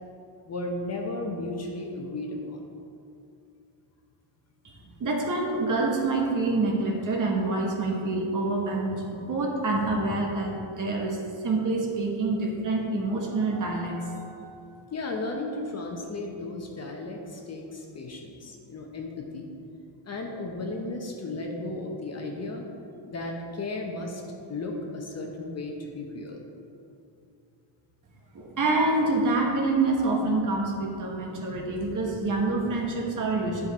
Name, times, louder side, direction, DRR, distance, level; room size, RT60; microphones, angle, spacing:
voice 1, 0.4-2.6 14.9-19.5 20.0-22.7 23.1-24.2 24.5-26.4, left 2 dB, 35° left, 1 dB, 0.9 m, -34 dB
voice 2, 5.0-11.2 11.4-14.4 28.3-33.7, right 2 dB, 40° right, 0 dB, 1.3 m, -26 dB
10.0 x 5.2 x 4.0 m, 2.6 s
cardioid pair, 140°, 48 cm